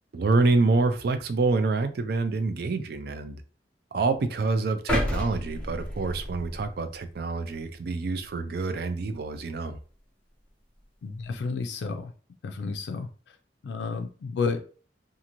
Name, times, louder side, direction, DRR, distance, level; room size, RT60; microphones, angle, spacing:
voice 1, 0.1-3.4 3.9-9.8, right 3 dB, 60° right, 0.4 m, -26 dB
sound 1, 4.9-7.0 7.5-7.7, left 1 dB, 5° left, 0.7 m, -30 dB
voice 2, 11.0-12.1 12.4-13.1 13.6-14.6, left 4 dB, 80° left, 0.3 m, -31 dB
2.5 x 2.5 x 2.9 m
head